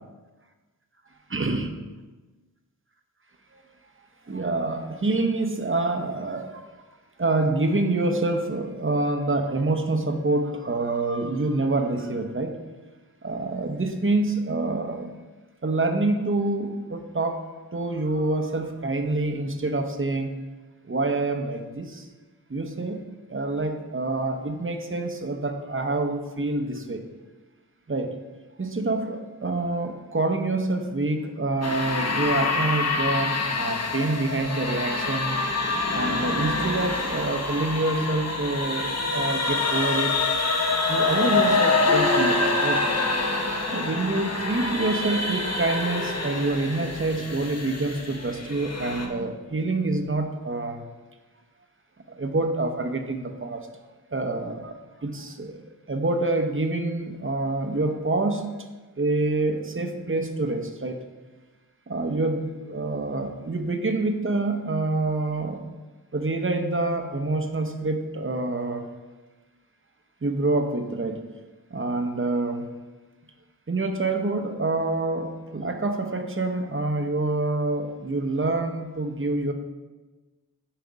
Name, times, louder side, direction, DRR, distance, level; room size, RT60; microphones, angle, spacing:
voice 1, 1.3-1.7 3.5-3.6 4.3-6.7 7.2-12.6 13.2-15.2 15.6-20.4 20.9-22.1 22.5-23.0 23.3-27.0 27.9-28.2 28.6-35.5 35.9-40.1 40.9-42.9 43.7-50.8 52.1-53.7 54.1-58.5 59.0-61.0 61.9-65.6 66.1-68.9 70.2-71.3 71.7-72.7 73.7-79.5, right 2 dB, 35° right, 5 dB, 0.8 m, -27 dB
sound 1, 31.6-49.1, left 3 dB, 45° left, 1.1 m, -26 dB
Harp, 41.9-43.6 44.0-44.4 45.0-45.1, equal, 5° right, 2.4 m, -32 dB
8.9 x 5.3 x 4.7 m, 1.2 s
wide cardioid pair, 90°, 37 cm